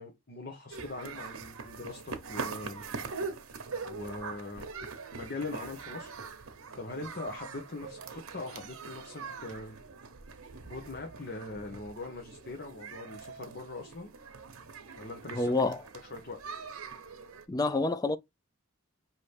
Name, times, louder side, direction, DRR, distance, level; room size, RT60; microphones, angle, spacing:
voice 1, 0.0-2.9 3.8-4.7 5.1-6.5 6.8-9.8 10.7-14.1 14.9-15.6 16.1-16.4, left 2 dB, 50° left, 0.9 m, -41 dB
sound 1, 0.7-17.5, right 4 dB, 85° right, 0.9 m, -43 dB
voice 2, 15.3-15.8 17.5-18.2, left 3 dB, 15° left, 0.3 m, -27 dB
5.5 x 2.9 x 3.3 m
head